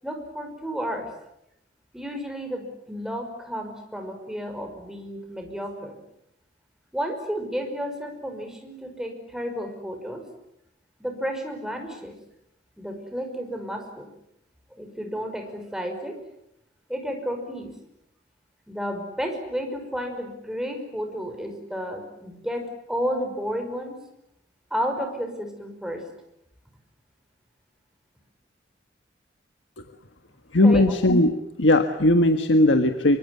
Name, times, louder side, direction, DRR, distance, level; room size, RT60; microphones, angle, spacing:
voice 1, 0.0-1.1 1.9-6.0 6.9-10.2 11.0-12.2 12.8-14.1 14.7-16.2 16.9-17.7 18.7-24.0 24.7-26.0 30.6-31.1, equal, 5° right, 4 dB, 5.5 m, -32 dB
voice 2, 30.5-31.3 31.6-33.2, left 1 dB, 85° left, 7 dB, 1.6 m, -18 dB
25.5 x 23.5 x 9.5 m, 0.81 s
head